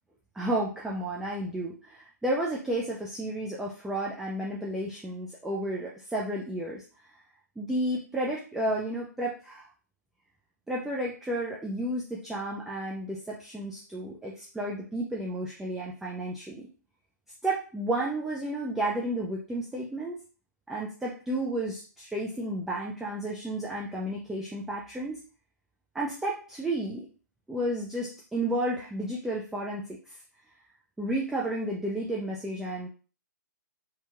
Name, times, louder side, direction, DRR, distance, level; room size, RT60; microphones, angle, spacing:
voice 1, 0.3-6.8 7.6-9.7 10.7-16.7 17.4-20.2 20.7-25.2 25.9-27.1 27.5-30.2 31.0-32.9, right 1 dB, 5° right, -4 dB, 0.3 m, -32 dB
2.8 x 2.7 x 2.3 m, 0.38 s
hypercardioid pair, 135°, 10 cm